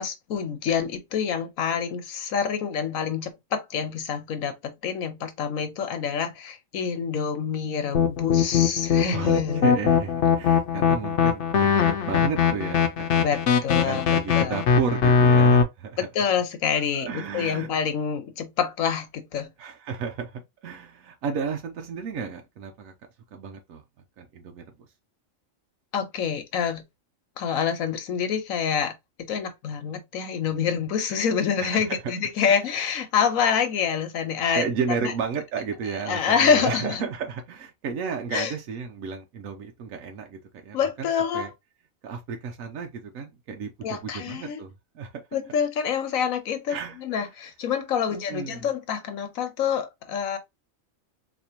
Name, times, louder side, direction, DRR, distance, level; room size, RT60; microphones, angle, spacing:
voice 1, 0.0-9.7 13.2-14.1 14.3-14.6 16.0-19.5 25.9-26.8 27.4-28.9 29.3-34.6 35.0-35.1 36.1-37.0 38.3-38.5 40.7-41.5 43.8-44.6 45.3-50.4, left 7 dB, 85° left, 1.3 m, -27 dB
sound 1, 7.9-15.6, left 6 dB, 65° left, 0.9 m, -20 dB
voice 2, 9.1-13.3 13.7-16.0 16.9-17.7 19.6-22.9 23.3-23.8 24.2-24.6 31.6-32.0 32.5-32.6 34.5-41.5 42.0-45.1 46.7-47.3 48.3-48.7, right 6 dB, 85° right, 1.1 m, -33 dB
4.2 x 2.9 x 2.8 m
omnidirectional pair, 1.4 m